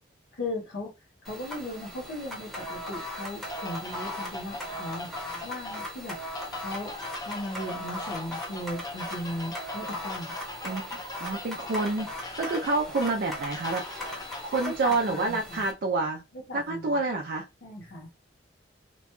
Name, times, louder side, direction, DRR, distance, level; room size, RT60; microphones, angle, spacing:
voice 1, 0.3-0.9 1.2-5.1 5.4-6.2 6.6-7.0 7.2-10.4 14.6-15.6 16.5-17.0 17.6-18.1, left 1 dB, 80° left, 0 dB, 0.8 m, -37 dB
sound 1, 1.2-15.7, left 1 dB, ahead, 0.8 m, -39 dB
sound 2, 3.5-14.6, left 2 dB, 20° left, 0.5 m, -41 dB
voice 2, 10.6-16.2 16.5-17.5, right 3 dB, 55° right, 2 dB, 0.4 m, -29 dB
2.9 x 2.2 x 2.9 m, 0.26 s
head